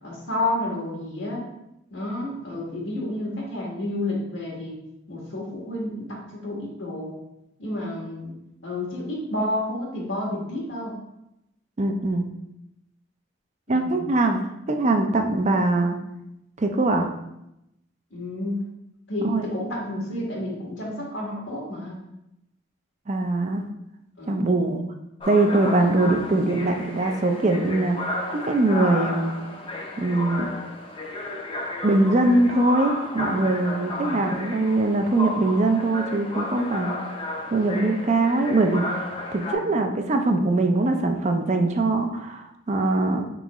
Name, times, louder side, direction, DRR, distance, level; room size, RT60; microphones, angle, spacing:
voice 1, 0.0-1.4 1.9-4.8 5.1-7.2 7.6-8.3 8.6-10.9 13.7-14.1 18.1-18.6 19.1-22.0 24.2-24.6 33.8-34.3 39.5-39.7, left 1 dB, 90° left, -3 dB, 1.5 m, -30 dB
voice 2, 11.8-12.2 13.7-14.4 14.7-16.0 16.6-17.1 19.2-19.5 23.1-23.6 24.3-24.8 25.3-29.3 30.0-30.5 31.8-38.8 39.3-43.2, right 2 dB, 35° right, 4 dB, 0.4 m, -22 dB
sound 1, 25.2-39.5, left 2 dB, 30° left, 0.6 m, -33 dB
4.6 x 3.8 x 3.0 m, 0.85 s
head